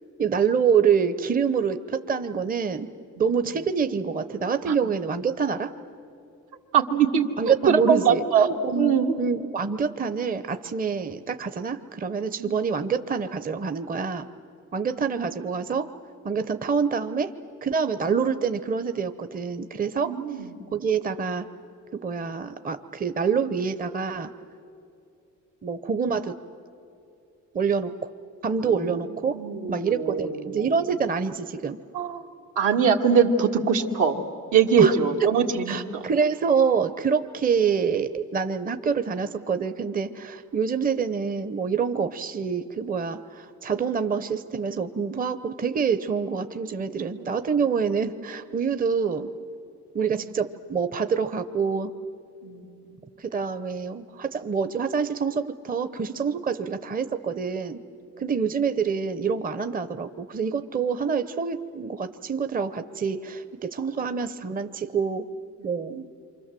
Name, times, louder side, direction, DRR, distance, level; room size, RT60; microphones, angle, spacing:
voice 1, 0.2-2.9 3.2-5.7 7.4-14.3 14.7-15.9 16.2-17.3 17.6-20.1 20.7-21.4 21.9-24.3 25.6-26.3 27.5-28.1 28.4-29.3 29.7-31.8 34.8-34.9 35.7-49.3 49.9-51.9 53.2-57.8 58.2-65.2 65.6-66.1, right 6 dB, 30° right, 9 dB, 0.8 m, -26 dB
voice 2, 6.7-8.5 8.7-9.2 12.4-12.5 20.1-20.5 28.6-28.9 29.3-30.7 31.9-32.3 32.6-34.2 34.5-36.0 52.4-52.7, right 6 dB, 80° right, 1 dB, 2.0 m, -22 dB
27.5 x 25.0 x 7.6 m, 2.6 s
cardioid pair, 90°, 30 cm